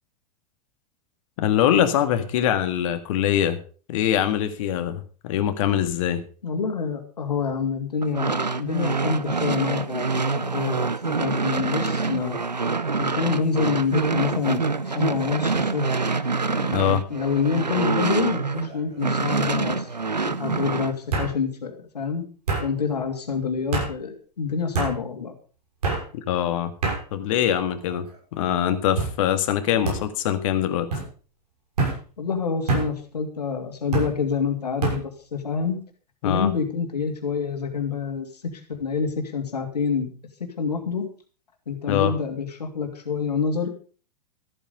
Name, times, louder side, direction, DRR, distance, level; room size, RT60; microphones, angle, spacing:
voice 1, 1.4-3.6 3.9-6.2 16.7-17.0 26.1-26.7 27.1-28.1 28.3-30.9 36.2-36.5 41.9-42.1, left 10 dB, 55° left, 9 dB, 1.8 m, -23 dB
voice 2, 6.4-12.4 13.0-15.9 16.5-16.8 17.1-19.9 20.3-22.2 22.6-25.3 32.2-35.8 36.2-38.3 38.7-40.1 40.6-41.0 41.7-43.7, left 5 dB, 75° left, 4 dB, 2.7 m, -27 dB
sound 1, 8.0-18.7 19.0-20.9, right 4 dB, 90° right, 0.8 m, -26 dB
sound 2, 17.7-18.0 18.4-19.0 20.0-20.1 21.1-21.3 22.5-22.7 23.7-23.9 24.7-24.9 25.8-26.0 26.8-27.0 27.8-28.2 29.0-29.2 29.8-30.0 30.9-31.1 31.8-32.0 32.7-32.9 33.9-34.1 34.8-35.0, right 3 dB, 70° right, 6.3 m, -26 dB
14.0 x 8.9 x 5.4 m, 0.39 s
figure-of-eight pair, 95°, 21 cm